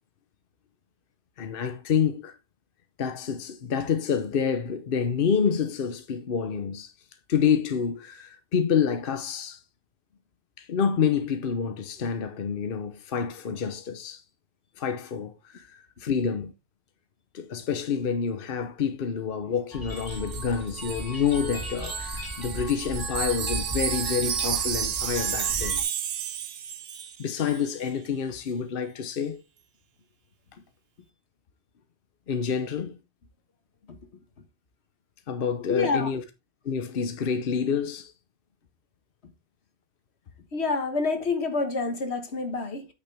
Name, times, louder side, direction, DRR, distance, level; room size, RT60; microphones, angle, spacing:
voice 1, 1.4-2.4 3.0-6.9 7.3-9.6 10.6-14.2 14.8-16.5 17.3-25.8 27.2-29.4 32.3-33.0 35.3-36.2 36.6-38.1, left 7 dB, 60° left, 1.0 m, -28 dB
sound 1, 19.7-25.8, equal, 20° right, 2.5 m, -37 dB
Wind chime, 20.0-27.2 27.5-27.7, right 9 dB, 65° right, 1.0 m, -31 dB
voice 2, 35.7-36.1 40.5-42.9, left 4 dB, 80° left, 1.7 m, -27 dB
8.6 x 6.7 x 3.4 m
omnidirectional pair, 1.1 m